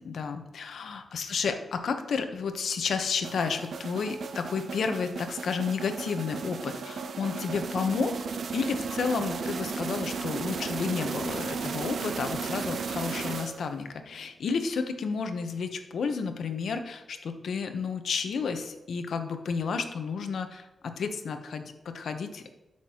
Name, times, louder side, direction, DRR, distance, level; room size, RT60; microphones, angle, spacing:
voice 1, 0.0-22.5, left 5 dB, 80° left, 7 dB, 0.9 m, -31 dB
sound 1, 3.2-13.9, right 5 dB, 70° right, 0.6 m, -35 dB
13.0 x 6.0 x 2.9 m, 1.0 s
wide cardioid pair, 145°, 0 cm